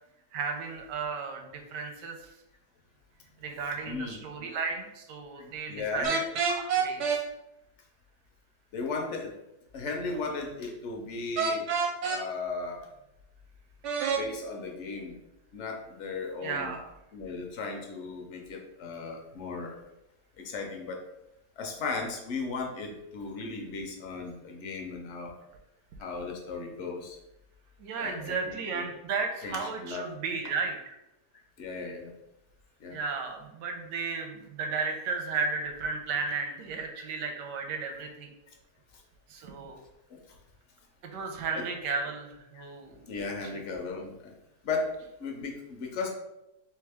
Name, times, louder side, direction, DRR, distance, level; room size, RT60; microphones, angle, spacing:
voice 1, 0.3-2.2 3.4-6.2 6.6-7.3 16.4-16.9 27.8-30.9 32.9-38.3 39.3-39.8 41.1-43.0 43.2-43.6, right 4 dB, 85° right, 4 dB, 1.3 m, -34 dB
voice 2, 3.9-4.2 5.4-6.2 8.7-9.3 9.7-11.7 12.1-12.9 14.1-15.2 15.5-16.8 17.1-19.8 20.4-21.0 21.6-25.3 26.0-27.2 28.0-28.9 29.4-30.1 31.6-32.1 32.8-33.0 37.1-37.2 40.1-40.2 41.5-41.7 42.5-42.6 43.1-44.3 44.6-44.9 45.2-46.1, left 4 dB, 60° left, 1 dB, 0.8 m, -36 dB
sound 1, 6.0-7.2 11.4-12.2 13.8-14.2, right 6 dB, 65° right, 0.7 m, -27 dB
3.5 x 3.3 x 3.4 m, 0.89 s
omnidirectional pair, 1.8 m